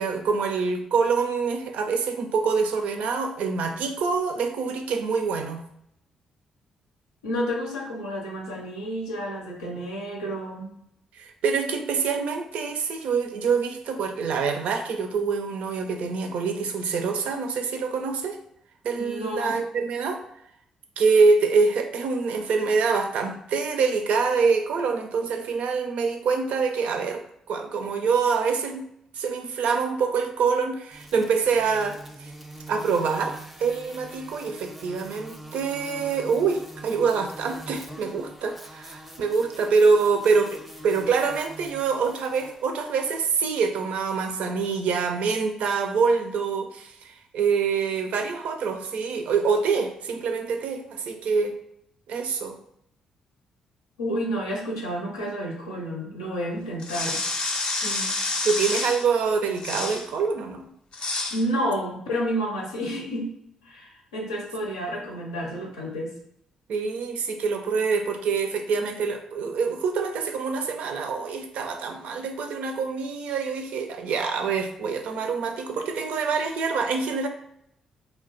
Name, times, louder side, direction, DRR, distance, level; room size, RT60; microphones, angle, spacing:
voice 1, 0.0-5.6 11.2-18.4 18.8-20.2 21.0-28.8 29.2-32.3 32.7-51.6 52.1-52.6 57.8-58.2 58.4-60.7 66.7-77.3, right 5 dB, 60° right, 5 dB, 0.4 m, -25 dB
voice 2, 7.2-10.7 19.0-19.5 54.0-57.2 61.3-63.3 63.6-66.1, equal, 80° left, -2 dB, 0.6 m, -30 dB
sound 1, 30.9-43.6, right 1 dB, 5° right, 0.5 m, -44 dB
sound 2, 56.8-59.1 59.6-60.1 60.9-61.4, left 2 dB, 40° left, 0.5 m, -28 dB
2.4 x 2.3 x 3.7 m, 0.74 s
figure-of-eight pair, 40°, 2 cm